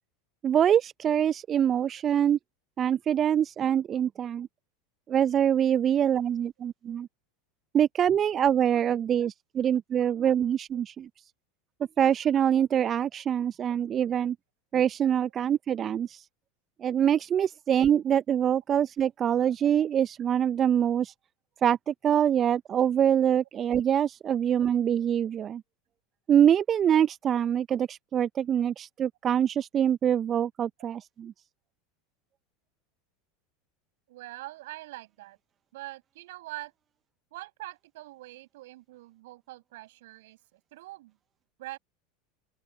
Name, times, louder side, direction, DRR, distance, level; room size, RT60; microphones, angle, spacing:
voice 1, 0.4-2.4 2.8-4.5 5.1-7.1 7.7-11.1 12.0-14.4 14.7-16.3 16.8-21.1 21.6-25.6 26.3-31.3, right 9 dB, 35° right, 0.8 m, -25 dB
voice 2, 34.1-35.4 35.7-36.7 37.3-41.2 41.6-41.8, right 18 dB, 65° right, 6.5 m, -44 dB
open air
figure-of-eight pair, 80°, 0 cm